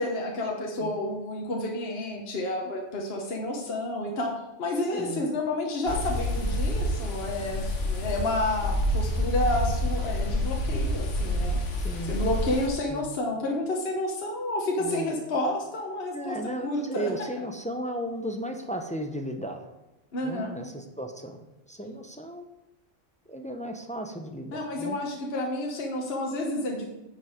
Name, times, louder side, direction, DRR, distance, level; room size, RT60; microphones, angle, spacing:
voice 1, 0.0-11.6 12.1-16.4 16.6-17.1 20.1-20.5 24.5-26.9, left 1 dB, 55° left, 0 dB, 1.3 m, -30 dB
voice 2, 4.9-5.3 11.8-12.2 12.9-13.1 14.8-15.1 16.1-19.7 20.2-22.4 23.3-25.0, right 1 dB, 10° left, 4 dB, 0.5 m, -35 dB
sound 1, 5.9-12.7, left 1 dB, 75° left, 1.5 m, -28 dB
9.4 x 5.3 x 5.0 m, 0.96 s
omnidirectional pair, 1.3 m